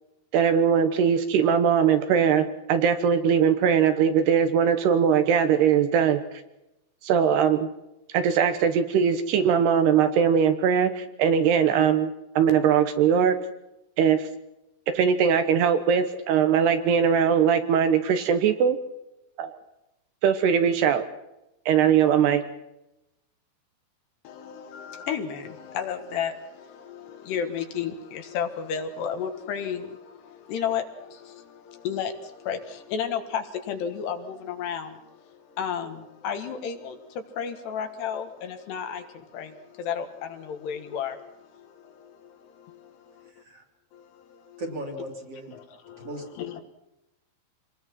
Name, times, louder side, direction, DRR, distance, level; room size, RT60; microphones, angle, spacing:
voice 1, 0.3-6.2 7.0-7.7 8.1-13.4 14.0-14.3 14.9-18.8 19.4-19.6 20.2-21.1 21.7-22.4, right 7 dB, 70° right, 9 dB, 2.9 m, -21 dB
voice 2, 24.2-43.3 43.9-44.6 45.5-46.6, left 7 dB, 70° left, 7 dB, 3.5 m, -33 dB
voice 3, 44.6-45.5 46.0-46.2, right 1 dB, 35° right, 3 dB, 3.2 m, -36 dB
26.0 x 20.0 x 6.0 m, 0.90 s
omnidirectional pair, 5.2 m